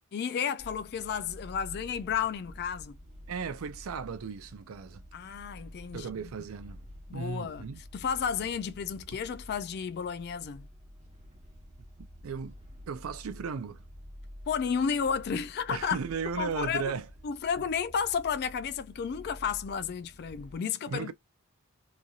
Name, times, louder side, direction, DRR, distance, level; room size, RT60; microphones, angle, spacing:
voice 1, 0.1-3.0 5.1-6.1 7.1-7.7 7.9-10.7 14.5-16.0 16.4-16.9 17.2-21.1, left 7 dB, 50° left, 0.3 m, -32 dB
sound 1, 0.6-20.6, equal, 35° right, 1.0 m, -49 dB
voice 2, 3.3-5.0 5.9-6.8 7.1-7.8 12.0-12.6 12.9-13.8 15.7-17.1 20.9-21.1, right 5 dB, 80° right, 0.4 m, -36 dB
3.0 x 2.6 x 2.4 m
head